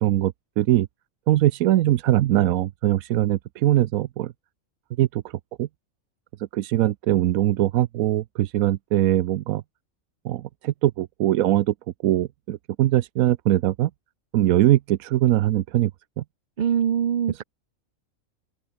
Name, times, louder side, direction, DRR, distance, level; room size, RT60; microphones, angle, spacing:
voice 1, 0.0-0.9 1.3-4.3 5.0-5.2 5.6-5.7 6.5-9.6 10.2-11.7 12.0-13.9 14.3-15.9 16.2-16.3, right 14 dB, 90° right, 1.1 m, -21 dB
voice 2, 16.6-17.4, right 8 dB, 50° right, 0.6 m, -23 dB
open air
omnidirectional pair, 1.4 m